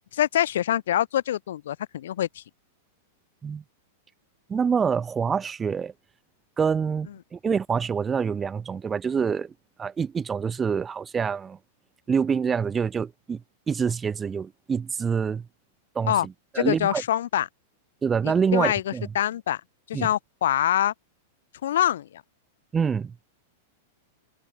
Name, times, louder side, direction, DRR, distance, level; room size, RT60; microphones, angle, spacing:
voice 1, 0.1-2.4 16.1-16.3 16.5-17.5 18.2-19.6 19.9-20.9 21.6-22.2, left 11 dB, 80° left, 1.7 m, -25 dB
voice 2, 4.5-5.9 6.6-9.5 9.8-11.6 12.1-13.4 13.7-15.5 16.0-16.2 16.5-17.0 18.0-19.1 19.9-20.1 22.7-23.1, right 6 dB, 15° right, 0.3 m, -26 dB
hypercardioid pair, 135°, 0 cm